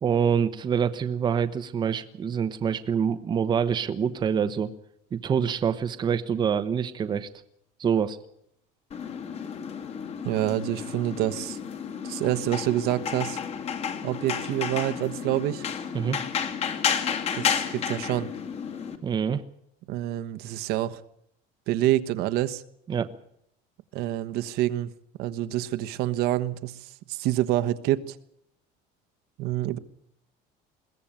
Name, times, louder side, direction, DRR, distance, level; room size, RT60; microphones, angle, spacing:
voice 1, 0.0-4.7 5.1-7.3 7.8-8.2 15.9-16.2 19.0-19.4 22.9-23.1, right 7 dB, 25° right, 10 dB, 1.0 m, -26 dB
sound 1, 8.9-19.0, left 7 dB, 35° left, 2.2 m, -31 dB
voice 2, 10.2-11.6 12.0-13.4 14.0-15.6 17.3-18.3 19.9-21.0 21.7-22.6 23.9-24.9 25.2-28.2 29.4-29.8, right 14 dB, 60° right, 11 dB, 1.2 m, -27 dB
22.0 x 17.0 x 8.9 m, 0.73 s
cardioid pair, 165°, 18 cm